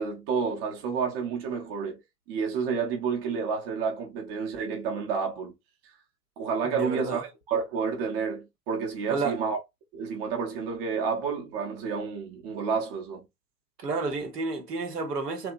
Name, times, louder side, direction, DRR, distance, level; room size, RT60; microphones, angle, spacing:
voice 1, 0.0-2.0 2.3-5.5 6.4-9.6 9.9-13.3, right 5 dB, 35° right, 0.8 m, -30 dB
voice 2, 6.6-7.2 9.1-9.4 13.8-15.5, right 4 dB, 70° right, 1.0 m, -31 dB
2.8 x 2.2 x 2.5 m
figure-of-eight pair, 100°, 49 cm